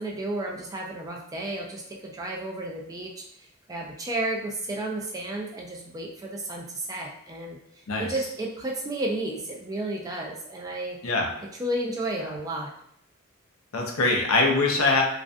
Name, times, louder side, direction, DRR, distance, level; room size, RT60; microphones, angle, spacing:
voice 1, 0.0-3.2 3.7-7.6 8.0-11.0 11.6-12.7, right 1 dB, 15° right, 0 dB, 0.3 m, -32 dB
voice 2, 13.7-15.0, left 3 dB, 85° left, 1 dB, 0.6 m, -23 dB
2.4 x 2.1 x 2.5 m, 0.71 s
head